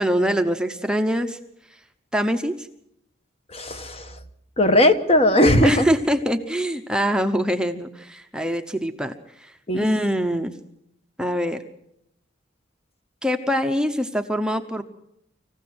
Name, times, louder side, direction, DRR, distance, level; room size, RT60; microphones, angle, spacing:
voice 1, 0.0-1.4 2.1-2.7 5.6-10.5 11.2-11.6 13.2-14.8, equal, 5° right, 6 dB, 0.9 m, -24 dB
voice 2, 3.5-4.1 4.6-5.8 9.7-9.9, left 1 dB, 30° left, 8 dB, 1.3 m, -18 dB
25.5 x 15.5 x 7.8 m, 0.77 s
head